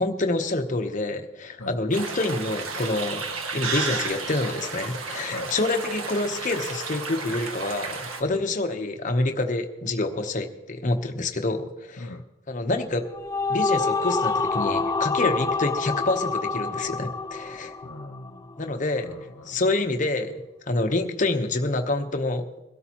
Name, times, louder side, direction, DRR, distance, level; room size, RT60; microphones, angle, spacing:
voice 1, 0.0-3.3 3.5-12.2 12.5-13.0 13.5-17.7 18.6-19.1 19.5-20.3 20.7-22.4, left 2 dB, 40° left, 5 dB, 1.0 m, -27 dB
sound 1, 1.9-8.2, right 4 dB, 90° right, 1.5 m, -32 dB
sound 2, 12.9-18.4, left 4 dB, 15° left, 0.5 m, -27 dB
voice 2, 17.8-18.5 19.0-19.8, left 1 dB, 65° left, 1 dB, 0.8 m, -40 dB
22.5 x 12.5 x 3.0 m, 1.0 s
head